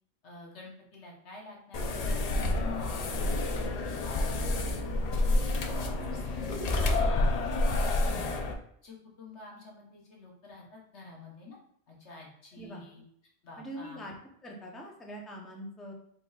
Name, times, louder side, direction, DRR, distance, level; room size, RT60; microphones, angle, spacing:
voice 1, 0.2-3.3 4.0-5.3 5.6-7.3 7.6-8.4 8.8-11.6 11.9-13.0 13.4-14.1, left 3 dB, 80° left, -2 dB, 1.4 m, -48 dB
sound 1, 1.7-8.5, left 2 dB, 55° left, 0.4 m, -29 dB
voice 2, 12.5-12.8 13.6-14.2 14.4-15.9, equal, ahead, -1 dB, 0.6 m, -43 dB
4.3 x 4.2 x 2.3 m, 0.66 s
omnidirectional pair, 1.1 m